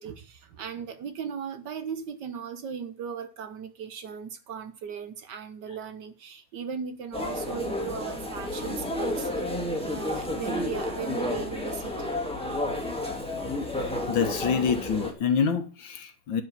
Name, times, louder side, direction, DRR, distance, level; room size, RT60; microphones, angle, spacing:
voice 1, 0.0-9.4 9.8-12.3, right 7 dB, 65° right, 1.3 m, -37 dB
sound 1, 7.1-15.1, left 1 dB, 5° left, 1.7 m, -31 dB
voice 2, 14.1-16.4, left 6 dB, 65° left, 1.9 m, -26 dB
11.5 x 4.9 x 7.3 m
omnidirectional pair, 2.3 m